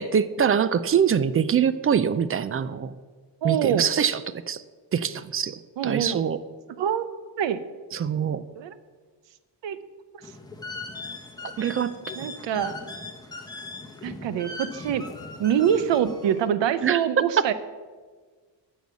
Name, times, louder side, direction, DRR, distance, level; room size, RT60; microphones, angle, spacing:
voice 1, 0.0-2.9 3.4-4.2 4.5-4.6 4.9-6.4 7.9-8.4 11.6-11.9 12.2-12.3 16.8-17.0 17.4-17.5, right 7 dB, 35° right, 15 dB, 0.4 m, -24 dB
voice 2, 3.4-3.9 5.8-6.2 6.8-7.1 7.4-7.6 8.5-8.7 9.6-9.8 12.2-12.8 14.0-15.1 15.4-17.5, right 9 dB, 80° right, 13 dB, 0.8 m, -25 dB
sound 1, 10.2-16.5, left 2 dB, 10° left, 1.2 m, -39 dB
9.2 x 6.4 x 8.3 m, 1.4 s
cardioid pair, 130°, 43 cm